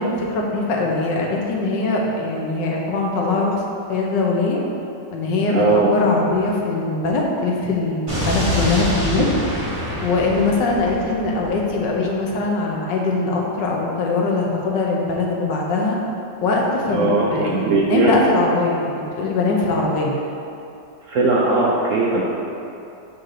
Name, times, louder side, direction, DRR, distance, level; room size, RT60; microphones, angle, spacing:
voice 1, 0.0-3.5 3.9-4.6 5.1-9.3 10.0-16.0 16.4-17.1 17.3-20.2, left 3 dB, 80° left, -1 dB, 1.5 m, -21 dB
voice 2, 5.5-5.9 16.9-18.1 21.1-22.2, right 3 dB, 65° right, -4 dB, 0.8 m, -19 dB
Explosion, 8.1-12.1, equal, 20° right, 1.2 m, -26 dB
6.4 x 4.5 x 3.8 m, 2.8 s
omnidirectional pair, 1.9 m